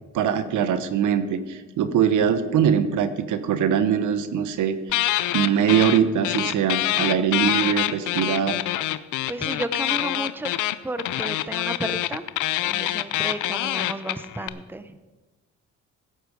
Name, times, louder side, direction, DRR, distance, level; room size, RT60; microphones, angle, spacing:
voice 1, 0.2-4.8 5.3-8.6, right 8 dB, 80° right, 11 dB, 1.0 m, -22 dB
sound 1, 4.9-6.0 6.2-14.5, left 15 dB, 85° left, 0.6 m, -25 dB
voice 2, 7.2-7.5 9.3-10.5 10.8-12.2 12.6-14.9, right 2 dB, 5° right, 11 dB, 0.8 m, -33 dB
16.0 x 8.0 x 5.2 m, 1.2 s
cardioid pair, 90°, 30 cm